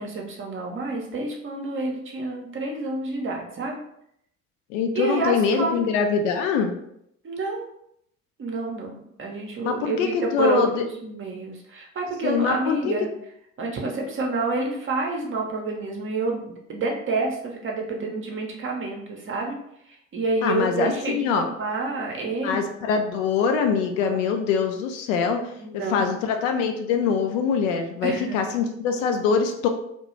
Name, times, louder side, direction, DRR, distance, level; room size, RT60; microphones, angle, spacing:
voice 1, 0.0-3.8 4.9-5.8 7.2-7.7 8.4-13.1 13.6-19.6 20.1-22.6 24.0-24.2 25.6-26.2 28.0-28.5, right 3 dB, 30° right, 0 dB, 0.7 m, -28 dB
voice 2, 4.7-6.8 9.6-10.8 12.2-12.9 20.4-21.5 22.4-25.4 25.9-29.7, left 6 dB, 70° left, 5 dB, 0.5 m, -23 dB
2.3 x 2.2 x 3.0 m, 0.74 s
figure-of-eight pair, 55°, 39 cm